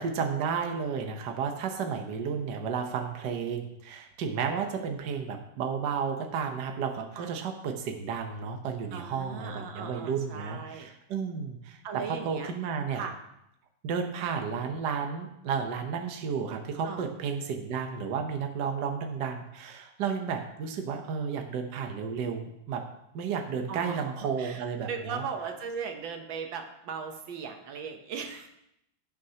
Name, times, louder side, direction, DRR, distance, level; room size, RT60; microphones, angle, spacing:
voice 1, 0.0-13.1 13.8-22.8 23.1-25.3, right 6 dB, 65° right, 4 dB, 1.5 m, -32 dB
voice 2, 8.9-10.9 11.8-12.5 12.9-13.1 16.8-17.1 23.7-24.1 24.4-24.6 24.9-28.5, right 6 dB, 80° right, 4 dB, 1.7 m, -38 dB
16.0 x 6.4 x 2.9 m, 0.80 s
omnidirectional pair, 2.1 m